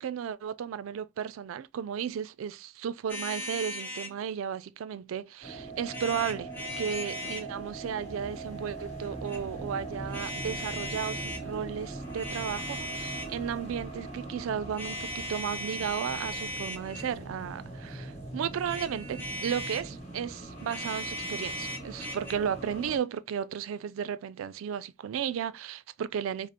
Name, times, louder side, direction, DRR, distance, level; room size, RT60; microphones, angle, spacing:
voice 1, 0.0-26.5, right 8 dB, 80° right, 0.3 m, -34 dB
sound 1, 3.1-4.2 5.9-7.5 9.0-9.4 10.1-11.4 12.0-13.4 14.7-17.2 18.5-19.9 20.6-22.3, left 1 dB, 10° left, 0.6 m, -38 dB
sound 2, 5.4-23.0, right 2 dB, 35° left, 1.3 m, -41 dB
4.9 x 2.0 x 2.8 m
head